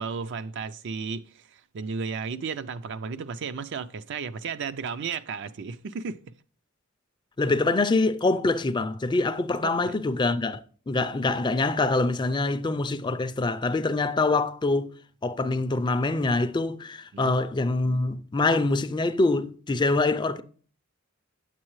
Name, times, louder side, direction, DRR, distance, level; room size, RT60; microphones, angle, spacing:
voice 1, 0.0-6.2 9.6-10.0 17.1-17.3, right 5 dB, 60° right, 0.4 m, -34 dB
voice 2, 7.4-10.6 10.9-14.9 15.2-20.4, left 3 dB, 20° left, 0.4 m, -25 dB
9.4 x 7.5 x 3.1 m
head